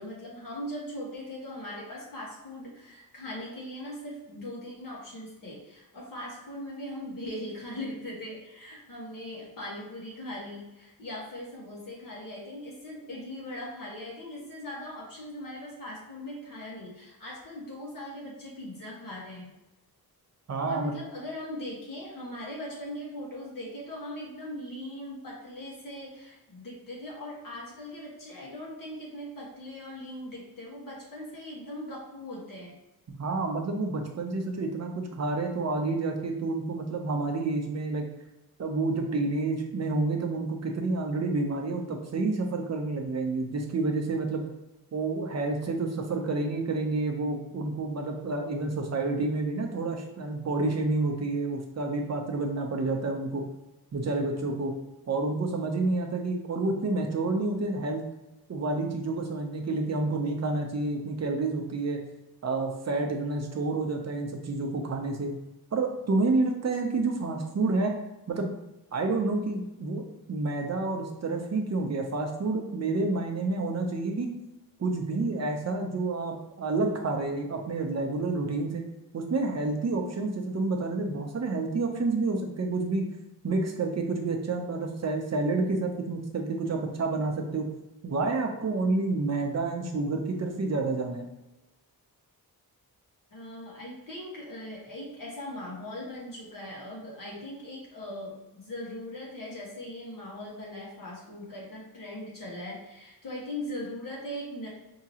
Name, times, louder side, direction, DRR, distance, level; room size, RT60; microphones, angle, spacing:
voice 1, 0.0-19.5 20.6-32.8 93.3-104.7, left 1 dB, 60° left, -4 dB, 1.4 m, -40 dB
voice 2, 20.5-20.9 33.1-38.0 38.6-44.4 44.9-53.4 53.9-54.7 55.1-58.0 58.5-62.0 62.4-65.3 65.7-67.9 68.3-68.5 68.9-70.0 70.3-74.3 74.8-78.8 79.1-83.0 83.4-87.7 88.0-91.3, right 3 dB, 45° right, 2 dB, 0.7 m, -29 dB
4.8 x 2.9 x 2.8 m, 0.98 s
wide cardioid pair, 160°, 38 cm